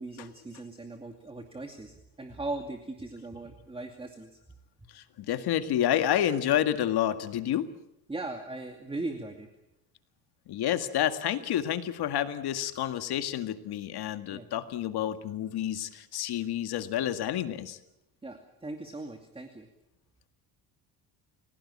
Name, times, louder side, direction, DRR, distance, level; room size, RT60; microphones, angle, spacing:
voice 1, 0.0-4.4 8.1-9.5 14.3-14.5 18.2-19.7, right 2 dB, 15° right, 5 dB, 2.5 m, -39 dB
voice 2, 4.9-7.7 10.5-17.8, left 11 dB, 65° left, 9 dB, 2.0 m, -29 dB
29.5 x 17.5 x 8.7 m, 0.87 s
cardioid pair, 110°, 42 cm